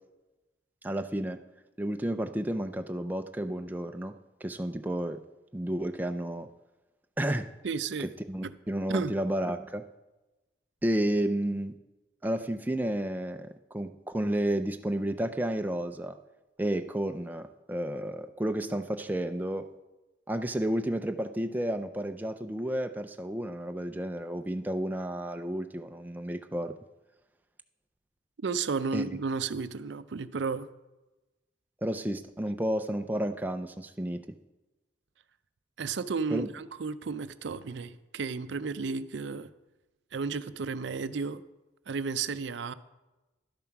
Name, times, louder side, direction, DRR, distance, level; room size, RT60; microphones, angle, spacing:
voice 1, 0.8-1.4 1.8-4.1 4.4-5.2 5.5-6.5 7.2-7.5 8.0-9.8 10.8-11.7 12.2-16.2 16.6-19.7 20.3-26.7 28.9-29.2 31.8-34.3 36.3-36.5, right 1 dB, 10° right, 7 dB, 0.4 m, -31 dB
voice 2, 7.6-8.1 8.9-9.1 28.4-30.7 35.8-39.5 40.1-41.4 41.9-42.7, right 4 dB, 65° right, 14 dB, 0.5 m, -33 dB
11.5 x 7.2 x 5.8 m, 1.1 s
head